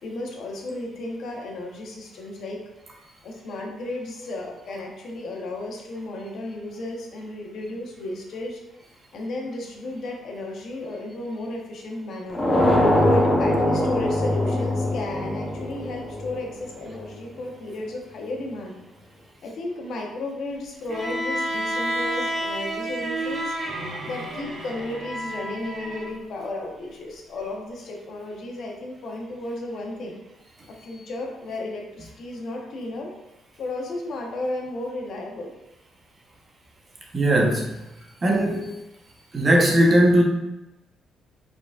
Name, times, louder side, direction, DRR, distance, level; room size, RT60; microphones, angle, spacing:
voice 1, 0.0-2.6 3.2-8.6 9.1-12.4 13.0-18.8 19.4-23.5 24.0-30.2 30.7-33.1 33.6-35.5, left 2 dB, 65° left, 0 dB, 0.9 m, -34 dB
sound 1, 12.3-17.1, left 1 dB, 20° left, 0.7 m, -22 dB
Bowed string instrument, 20.9-26.1, right 1 dB, 50° right, 1.1 m, -30 dB
voice 2, 37.1-37.7 38.2-38.8 39.3-40.2, right 1 dB, 30° right, 0 dB, 0.9 m, -18 dB
4.8 x 3.8 x 2.4 m, 0.97 s
cardioid pair, 90°, 0 cm